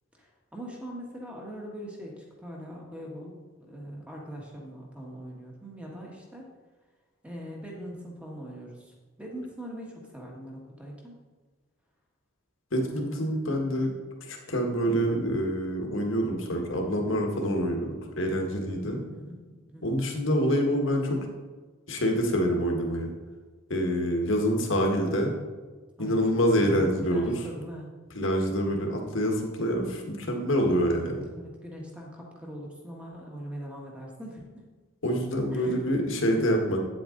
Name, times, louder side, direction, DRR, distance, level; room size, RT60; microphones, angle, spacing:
voice 1, 0.1-6.5 7.2-11.1 12.8-13.5 18.8-20.0 26.0-27.9 31.3-34.6 35.5-35.8, equal, 5° right, -2 dB, 1.5 m, -42 dB
voice 2, 12.7-13.9 14.3-19.0 19.8-21.2 21.9-23.1 23.7-25.3 26.0-27.3 28.1-31.2 35.0-36.8, equal, 70° left, 2 dB, 1.6 m, -26 dB
9.1 x 7.9 x 3.9 m, 1.4 s
head